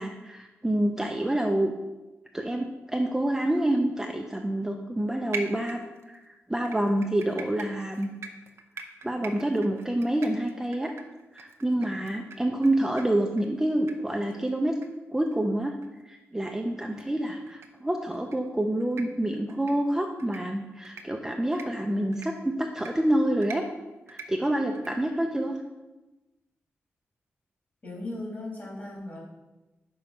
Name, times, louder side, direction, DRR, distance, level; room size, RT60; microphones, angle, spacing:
voice 1, 0.0-1.7 2.3-8.1 9.0-10.9 11.3-14.7 15.1-15.7 16.1-23.6 24.1-25.6, right 1 dB, 10° right, 2 dB, 0.5 m, -27 dB
sound 1, 5.3-6.2 6.6-12.7 13.0-13.1 13.4-13.5 13.9-14.0 14.3-14.4 14.8-14.9 15.3-15.4 15.8-15.9 16.9-17.0 17.5-17.7 18.1-18.4 18.8-19.0 19.5-19.7 20.2-20.4 20.8-21.0 21.5-21.7 22.1-22.3 22.8-22.9 23.4-23.6 24.1-24.3 24.7-24.9, right 4 dB, 65° right, 0.7 m, -41 dB
voice 2, 27.8-29.2, left 2 dB, 40° left, -3 dB, 2.5 m, -37 dB
5.8 x 4.6 x 5.3 m, 1.1 s
wide cardioid pair, 115°, 5 cm